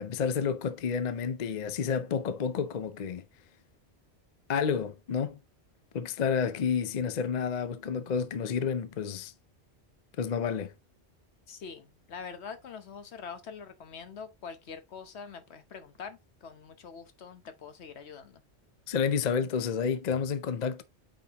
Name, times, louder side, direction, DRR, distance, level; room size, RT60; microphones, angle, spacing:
voice 1, 0.0-3.2 4.5-5.4 5.9-9.3 10.2-10.7 18.9-20.8, left 6 dB, 50° left, 0.6 m, -30 dB
voice 2, 11.5-18.4, left 6 dB, 70° left, 1.2 m, -44 dB
8.9 x 4.3 x 2.9 m
omnidirectional pair, 1.2 m